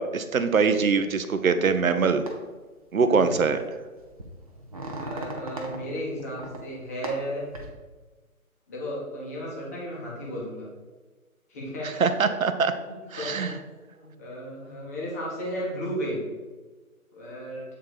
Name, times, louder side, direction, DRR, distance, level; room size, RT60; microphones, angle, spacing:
voice 1, 0.0-2.2 2.9-3.6 11.8-12.7 13.1-13.5, right 5 dB, 70° right, 9 dB, 0.8 m, -23 dB
sound 1, 2.3-2.4 3.2-3.5 4.0-5.8 6.2-6.6 7.0-7.7, right 1 dB, 25° right, 0.7 m, -37 dB
voice 2, 5.0-7.4 8.7-10.7 11.5-12.1 12.9-13.5 13.9-16.2 17.1-17.6, equal, 10° left, -5 dB, 0.9 m, -34 dB
8.1 x 3.9 x 4.8 m, 1.3 s
figure-of-eight pair, 145°, 43 cm